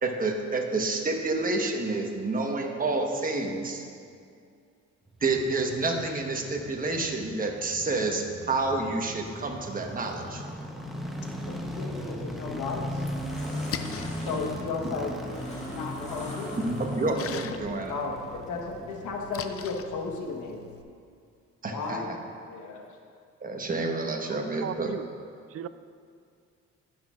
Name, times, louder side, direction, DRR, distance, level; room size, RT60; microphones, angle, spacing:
voice 1, 0.0-3.9 5.2-10.4 16.6-17.9 21.6-22.0 23.4-24.9, right 3 dB, 30° right, 2 dB, 1.2 m, -29 dB
sound 1, 5.1-20.3 20.5-20.6, equal, ahead, 0.9 m, -38 dB
voice 2, 11.4-13.1 14.3-15.1 15.4-17.0 17.5-17.6 17.9-20.6 21.7-22.1 22.5-22.8, left 4 dB, 80° left, 1 dB, 1.3 m, -35 dB
sound 2, 12.2-12.3 12.8-17.5, left 1 dB, 20° left, 1.8 m, -44 dB
Splash splatter, 13.4-20.8, left 8 dB, 50° left, 0.5 m, -42 dB
voice 3, 24.3-25.1 25.5-25.7, right 10 dB, 50° right, 14 dB, 0.4 m, -36 dB
18.0 x 6.2 x 2.5 m, 2.3 s
cardioid pair, 90°, 30 cm